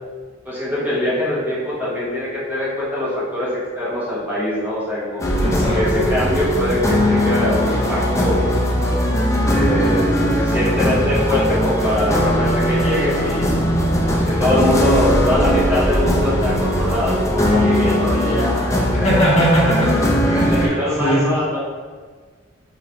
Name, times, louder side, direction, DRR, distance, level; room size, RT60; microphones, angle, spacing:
voice 1, 0.4-5.2 5.7-8.5 9.4-13.6 14.1-19.4 20.5-21.6, left 1 dB, 10° right, -9 dB, 0.7 m, -23 dB
sound 1, 5.2-20.7, equal, 15° left, 0.4 m, -19 dB
voice 2, 5.4-6.0 18.9-21.3, equal, 35° left, -7 dB, 1.0 m, -20 dB
4.2 x 2.9 x 2.5 m, 1.5 s
head